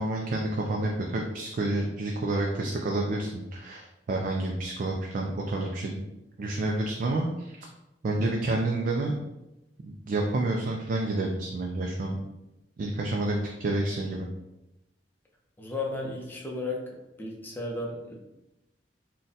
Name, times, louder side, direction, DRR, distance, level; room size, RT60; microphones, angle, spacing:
voice 1, 0.0-6.0 6.4-7.7 8.0-9.1 10.1-12.2 12.8-14.3, right 2 dB, 50° right, 0 dB, 0.3 m, -29 dB
voice 2, 15.6-16.8 17.2-18.1, left 2 dB, 10° left, -2 dB, 0.6 m, -34 dB
3.8 x 2.2 x 2.6 m, 0.94 s
head